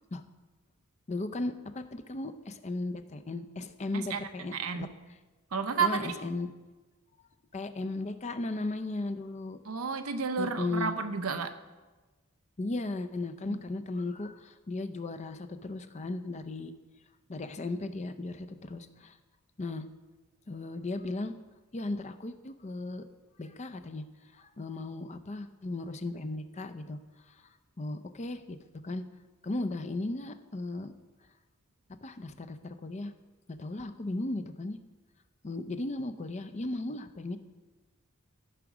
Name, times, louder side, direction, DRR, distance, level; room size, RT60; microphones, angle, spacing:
voice 1, 1.1-4.9 5.8-6.5 7.5-9.6 10.4-10.9 12.6-16.7 17.3-19.2 19.6-19.9 20.5-21.3 21.7-23.0 23.4-24.0 24.3-27.0 27.3-27.4 27.8-28.6 28.8-29.0 29.4-30.9 32.0-33.1 33.6-34.8 35.4-37.4, left 2 dB, 30° left, 9 dB, 0.5 m, -36 dB
voice 2, 3.9-4.9 5.5-6.1 9.6-11.5 13.5-13.6, right 5 dB, 80° right, 8 dB, 0.8 m, -32 dB
14.5 x 4.8 x 6.1 m, 1.2 s
head